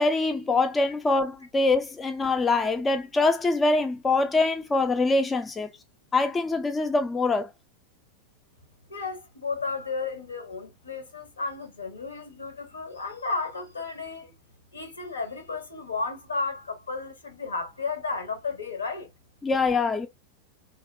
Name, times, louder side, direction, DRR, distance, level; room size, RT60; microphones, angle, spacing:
voice 1, 0.0-5.7 6.1-7.5 19.4-20.1, left 3 dB, 15° left, 0.3 m, -24 dB
voice 2, 8.9-14.3 14.7-19.1, left 4 dB, 75° left, 0.9 m, -33 dB
2.8 x 2.1 x 2.2 m
figure-of-eight pair, 90°, 0 cm